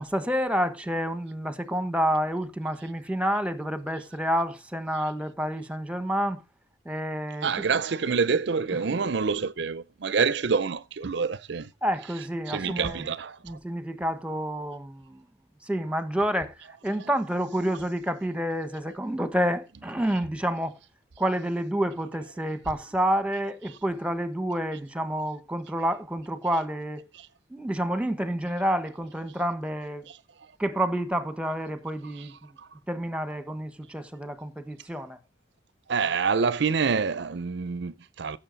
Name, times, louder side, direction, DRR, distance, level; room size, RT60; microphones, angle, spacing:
voice 1, 0.0-6.4 6.8-7.5 11.8-13.0 13.4-15.2 15.6-16.6 16.8-20.8 21.2-27.0 27.5-30.0 30.6-32.5 32.9-35.2, equal, 5° right, 1.2 m, -29 dB
voice 2, 7.4-11.7 12.5-13.6 17.0-17.1 27.1-27.3 30.1-30.2 32.2-32.3 32.6-32.7 35.9-38.4, right 5 dB, 60° right, 0.5 m, -27 dB
15.5 x 7.4 x 4.0 m
head